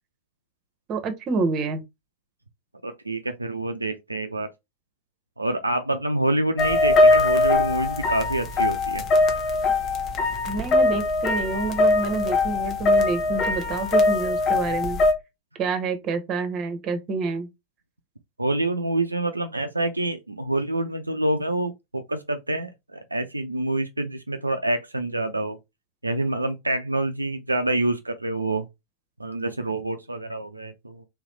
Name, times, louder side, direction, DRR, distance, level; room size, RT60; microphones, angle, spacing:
voice 1, 0.9-1.8 10.5-15.0 15.6-17.5, right 3 dB, 35° right, 1.0 m, -28 dB
voice 2, 2.8-4.5 5.4-9.0 18.4-25.6 26.0-28.6 29.2-31.1, right 2 dB, 85° right, 0.4 m, -27 dB
sound 1, 6.6-15.1, left 2 dB, 30° left, 0.9 m, -21 dB
3.4 x 3.1 x 3.2 m
figure-of-eight pair, 90°, 0 cm